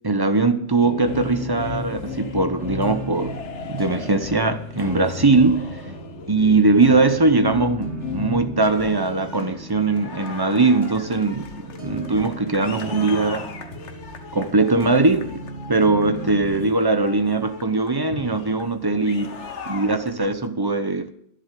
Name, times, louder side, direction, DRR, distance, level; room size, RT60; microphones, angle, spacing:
voice 1, 0.0-5.8 6.3-13.5 14.3-19.4 19.7-21.1, right 3 dB, 20° right, 0.8 m, -20 dB
sound 1, 0.8-16.8, right 2 dB, 50° right, 2.1 m, -37 dB
sound 2, 0.9-20.5, left 5 dB, 70° left, 1.5 m, -36 dB
11.5 x 10.5 x 7.6 m
omnidirectional pair, 1.2 m